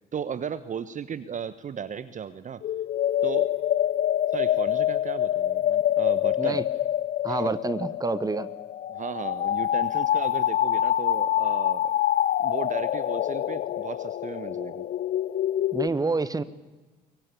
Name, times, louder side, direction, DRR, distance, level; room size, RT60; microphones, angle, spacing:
voice 1, 0.1-2.6 3.2-3.5 4.3-6.6 7.3-7.6 8.9-11.9 12.4-14.9, right 7 dB, 40° right, 1.1 m, -35 dB
sound 1, 2.6-15.9, left 11 dB, 45° left, 0.7 m, -26 dB
voice 2, 7.2-8.5 15.7-16.4, right 3 dB, 20° right, 1.4 m, -27 dB
23.5 x 23.0 x 8.5 m
figure-of-eight pair, 50°, 20 cm